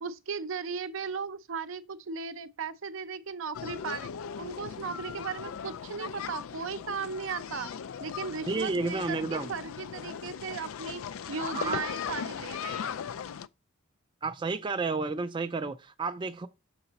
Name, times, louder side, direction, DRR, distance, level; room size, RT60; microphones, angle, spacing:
voice 1, 0.0-4.1 4.4-7.7 8.0-11.0 11.3-13.0, right 5 dB, 65° right, 0.6 m, -37 dB
sound 1, 3.5-13.5, left 7 dB, 80° left, 0.4 m, -38 dB
voice 2, 8.5-9.5 11.5-11.8 14.2-16.5, right 3 dB, 25° right, 0.4 m, -31 dB
6.8 x 4.9 x 4.0 m
head